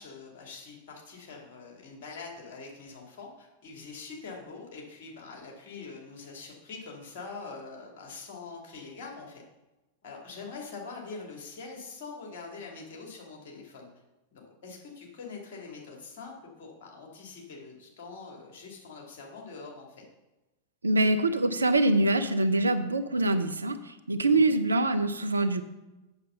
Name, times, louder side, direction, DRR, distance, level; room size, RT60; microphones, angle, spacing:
voice 1, 0.0-9.4 10.0-13.9 14.3-20.0 24.3-24.6, left 4 dB, 50° left, 0 dB, 2.4 m, -44 dB
voice 2, 20.8-25.6, right 2 dB, 80° right, 10 dB, 0.6 m, -24 dB
8.2 x 6.6 x 5.6 m, 1.0 s
figure-of-eight pair, 90°, 0 cm